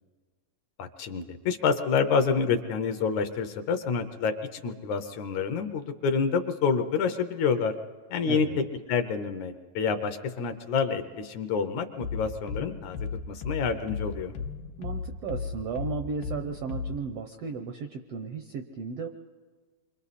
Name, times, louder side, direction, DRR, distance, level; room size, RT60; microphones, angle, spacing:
voice 1, 0.8-4.3 4.6-7.7 8.1-8.5 8.9-13.0 13.3-14.3, left 5 dB, 70° left, 8 dB, 2.0 m, -28 dB
voice 2, 8.3-8.7 14.8-19.1, right 5 dB, 80° right, 5 dB, 1.4 m, -35 dB
sound 1, 12.0-17.0, left 5 dB, 90° left, 2.6 m, -35 dB
29.0 x 24.0 x 4.2 m, 1.5 s
omnidirectional pair, 3.8 m